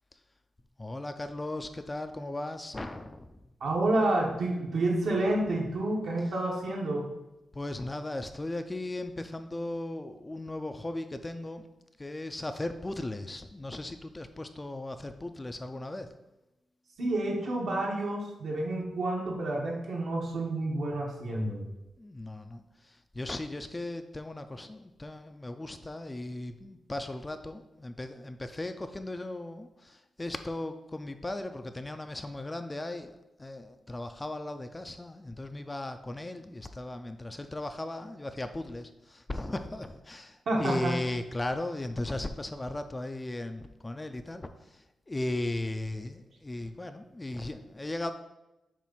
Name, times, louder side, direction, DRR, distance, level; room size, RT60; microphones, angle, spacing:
voice 1, 0.8-3.4 7.5-11.6 12.0-16.1 22.0-22.6 23.1-44.5 45.1-48.1, left 2 dB, 15° left, 8 dB, 0.3 m, -37 dB
voice 2, 3.6-7.0 17.0-21.6 40.5-41.0, right 2 dB, 70° right, -3 dB, 1.3 m, -29 dB
7.3 x 2.5 x 5.5 m, 0.95 s
wide cardioid pair, 145°, 0 cm